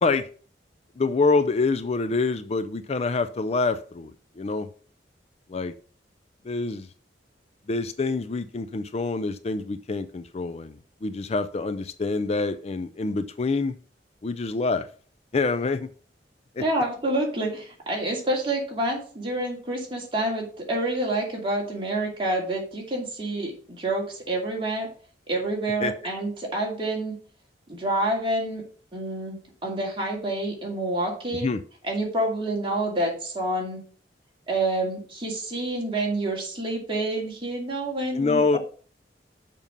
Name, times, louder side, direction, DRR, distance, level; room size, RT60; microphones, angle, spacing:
voice 1, 1.0-4.7 5.5-5.7 6.5-6.9 7.7-10.7 11.0-13.7 14.2-14.9 15.3-15.9 16.6-16.7 25.8-25.9 31.4-31.6 38.1-38.6, left 3 dB, 35° left, 12 dB, 0.4 m, -26 dB
voice 2, 16.6-24.9 25.3-27.1 27.7-28.6 28.9-31.5 31.8-33.8 34.5-38.6, right 1 dB, 30° right, -2 dB, 2.6 m, -28 dB
7.2 x 5.4 x 5.3 m, 0.42 s
head